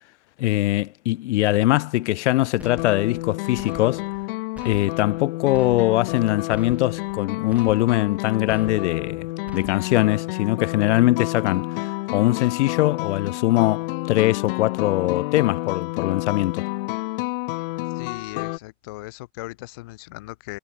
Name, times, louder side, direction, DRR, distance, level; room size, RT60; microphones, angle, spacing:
voice 1, 0.4-4.0 4.6-9.3 9.5-11.7 12.1-16.6, left 17 dB, 60° left, 0.7 m, -22 dB
sound 1, 2.6-18.6, left 21 dB, 45° left, 1.9 m, -30 dB
sound 2, 2.6-3.3 3.6-4.3 4.6-5.2 5.5-6.2 6.5-7.2 7.5-8.2 8.5-9.2 9.5-10.2, right 2 dB, 5° right, 2.4 m, -46 dB
voice 2, 17.9-20.6, left 20 dB, 20° left, 0.4 m, -38 dB
supercardioid pair, 170°, 39 cm